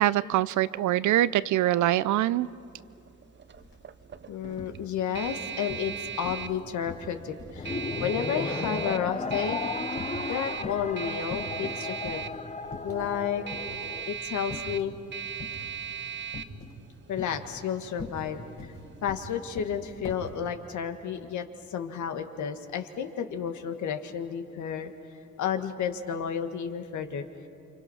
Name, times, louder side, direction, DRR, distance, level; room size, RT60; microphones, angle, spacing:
voice 1, 0.0-2.5, right 14 dB, 75° right, 18 dB, 0.6 m, -24 dB
sound 1, 2.4-19.2, right 8 dB, 40° right, 0.7 m, -39 dB
sound 2, 3.5-3.7 4.0-4.8 5.1-6.0 6.2-6.6 6.9-9.7 9.9-10.9 11.3-11.7 12.1-12.2 12.7-13.2 13.5-14.9 15.4-15.8 16.3-16.8 17.1-20.4, left 3 dB, 45° left, 3.6 m, -42 dB
voice 2, 4.3-5.9 6.2-9.6 10.3-12.2 12.8-13.4 14.1-14.9 17.1-18.5 19.0-24.9 25.4-27.2, left 8 dB, 70° left, 7 dB, 1.6 m, -32 dB
sound 3, 7.6-14.1, left 4 dB, 20° left, 0.8 m, -35 dB
29.0 x 25.0 x 5.7 m, 2.6 s
cardioid pair, 90°, 30 cm